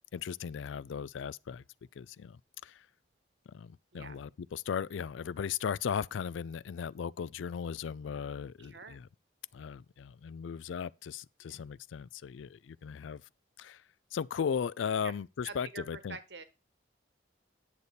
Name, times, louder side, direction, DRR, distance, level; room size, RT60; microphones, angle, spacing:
voice 1, 0.1-1.6 2.0-2.9 3.5-9.1 9.5-13.2 13.6-13.8 14.1-16.2, left 7 dB, 85° left, 0.4 m, -37 dB
voice 2, 8.6-9.0 11.4-11.6 15.0-15.1 15.4-16.4, right 4 dB, 65° right, 1.2 m, -46 dB
9.8 x 6.7 x 4.1 m
head